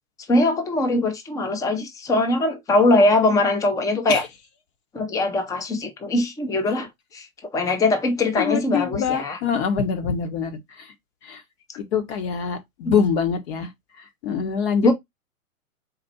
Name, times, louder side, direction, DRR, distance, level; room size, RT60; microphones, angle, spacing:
voice 1, 0.3-4.2 4.9-7.3 7.5-9.4 12.8-13.0 14.8-14.9, left 2 dB, 10° left, 0.6 m, -21 dB
voice 2, 8.4-10.9 11.2-11.4 11.8-13.7 14.2-14.9, left 6 dB, 50° left, 1.3 m, -24 dB
4.3 x 2.4 x 4.2 m
hypercardioid pair, 120°, 42 cm